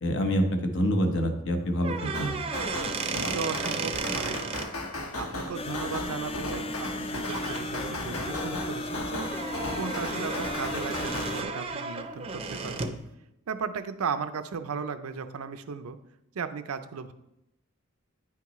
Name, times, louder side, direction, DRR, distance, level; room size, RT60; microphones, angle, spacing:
voice 1, 0.0-2.4, equal, 60° left, 5 dB, 0.9 m, -26 dB
sound 1, 1.8-4.7 6.8-7.0 7.3-7.6 8.1-13.0, right 4 dB, 25° right, 0.5 m, -34 dB
sound 2, 2.1-11.3, left 1 dB, 85° left, 1.2 m, -37 dB
voice 2, 3.1-4.4 5.2-9.3 9.7-13.0 13.5-16.0 16.3-17.1, right 5 dB, 85° right, 10 dB, 0.5 m, -36 dB
sound 3, 5.5-11.4, left 2 dB, 25° left, 0.3 m, -35 dB
9.3 x 5.8 x 3.1 m, 0.88 s
head